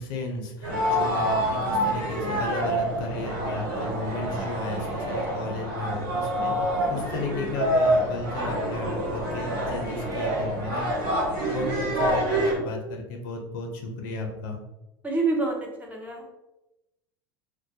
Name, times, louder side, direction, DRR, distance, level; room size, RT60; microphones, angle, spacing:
voice 1, 0.0-14.6, left 2 dB, 65° left, 2 dB, 0.5 m, -34 dB
sound 1, 0.6-12.5, right 1 dB, 70° right, 1.3 m, -27 dB
voice 2, 15.0-16.4, right 3 dB, 10° right, 0 dB, 0.6 m, -28 dB
2.2 x 2.1 x 2.6 m, 0.95 s
hypercardioid pair, 80°, 12 cm